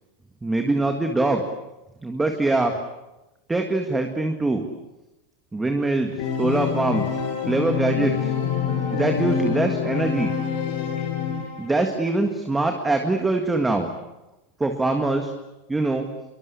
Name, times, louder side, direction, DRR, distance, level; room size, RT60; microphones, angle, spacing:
voice 1, 0.4-1.4 2.0-2.7 3.5-4.6 5.5-7.1 7.5-8.4 8.9-10.3 11.6-13.9 14.6-15.3 15.7-16.1, right 2 dB, 5° right, 4 dB, 1.8 m, -23 dB
Organ, 6.2-11.9, left 7 dB, 55° left, 6.9 m, -26 dB
28.0 x 23.0 x 8.4 m, 0.99 s
supercardioid pair, 165°, 0 cm